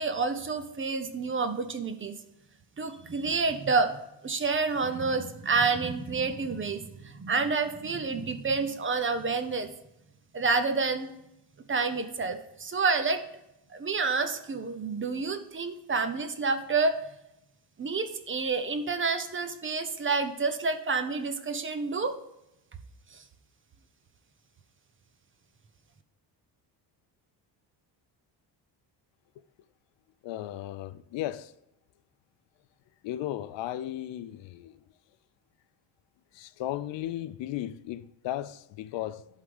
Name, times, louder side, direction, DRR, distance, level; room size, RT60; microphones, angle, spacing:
voice 1, 0.0-2.1 2.8-4.0 4.2-9.7 10.3-11.2 11.7-13.2 13.7-17.0 17.8-22.1 23.1-23.2, right 4 dB, 25° right, 0.7 m, -29 dB
voice 2, 30.2-31.5 33.0-34.8 36.3-39.3, left 13 dB, 70° left, 0.5 m, -35 dB
11.0 x 3.7 x 5.0 m
cardioid pair, 120°, 46 cm